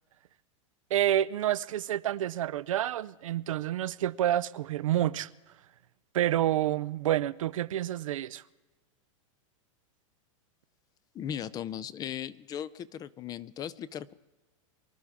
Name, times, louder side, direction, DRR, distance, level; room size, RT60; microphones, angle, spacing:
voice 1, 0.9-5.3 6.1-8.4, right 12 dB, 90° right, 0.5 m, -28 dB
voice 2, 11.1-14.1, left 9 dB, 25° left, 0.4 m, -37 dB
24.0 x 11.5 x 3.5 m
hypercardioid pair, 130°, 17 cm